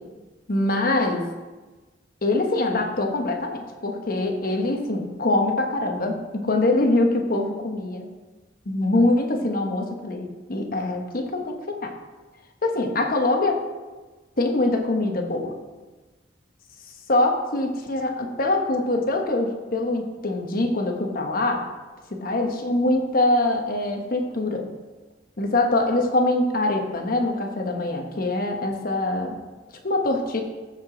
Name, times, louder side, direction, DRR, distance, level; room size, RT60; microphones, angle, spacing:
voice 1, 0.5-1.3 2.2-8.1 8.7-11.9 12.6-13.6 14.4-15.5 17.1-21.6 22.1-24.7 25.4-29.4 29.8-30.4, left 2 dB, 50° left, 3 dB, 1.1 m, -24 dB
14.5 x 4.9 x 3.9 m, 1.3 s
head